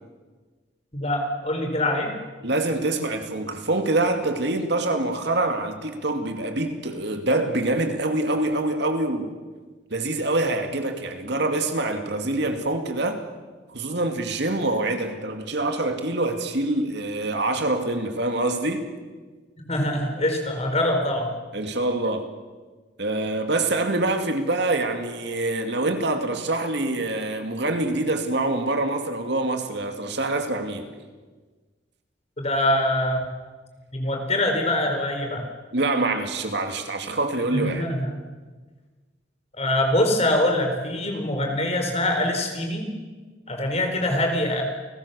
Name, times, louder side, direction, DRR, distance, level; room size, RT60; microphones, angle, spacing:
voice 1, 0.9-2.1 19.7-21.3 32.4-33.3 33.9-35.5 37.5-38.2 39.5-42.9 43.5-44.6, left 1 dB, 35° left, 3 dB, 4.6 m, -24 dB
voice 2, 2.4-9.3 9.9-13.2 13.7-18.9 21.5-22.3 23.0-30.9 35.7-37.9, right 2 dB, 65° right, 6 dB, 2.6 m, -25 dB
30.0 x 19.5 x 7.0 m, 1.4 s
head